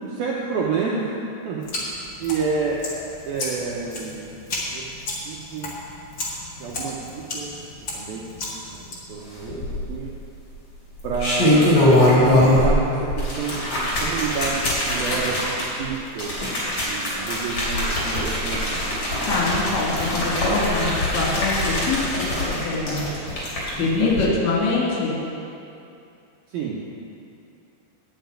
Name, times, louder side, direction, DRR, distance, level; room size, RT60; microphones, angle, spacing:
voice 1, 0.0-1.9 2.2-2.8 3.3-4.4 4.7-4.8 5.3-5.7 6.6-7.6 7.9-8.3 8.7-10.1 11.0-16.4 16.8-18.9 23.8-24.2 26.5-26.9, right 5 dB, 80° right, -3 dB, 2.1 m, -29 dB
sound 1, 1.6-8.9, left 2 dB, 55° left, 1.3 m, -34 dB
sound 2, 9.5-10.1 10.9-12.8 13.1-23.7 24.1-24.2, left 1 dB, 35° left, 3.3 m, -22 dB
voice 2, 19.3-23.1 23.7-25.2, left 3 dB, 75° left, -5 dB, 4.7 m, -24 dB
9.8 x 7.0 x 8.9 m, 2.7 s
omnidirectional pair, 5.3 m